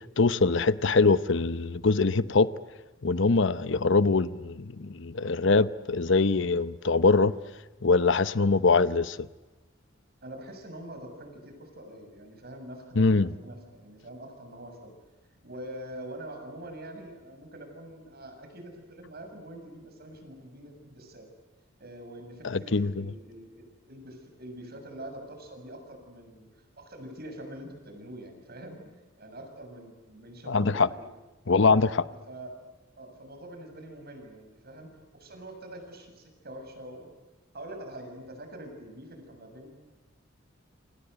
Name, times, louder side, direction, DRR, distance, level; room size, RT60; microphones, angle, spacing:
voice 1, 0.2-2.5 3.0-7.3 7.8-9.3 13.0-13.3 22.4-23.0 30.5-30.9 31.5-32.1, left 3 dB, 65° left, 0.8 m, -23 dB
voice 2, 10.2-14.9 15.4-21.3 21.8-26.5 26.8-28.9 29.2-31.1 32.1-32.5 33.0-37.1 37.5-39.7, right 1 dB, 55° right, 7.2 m, -44 dB
28.5 x 26.0 x 8.1 m
head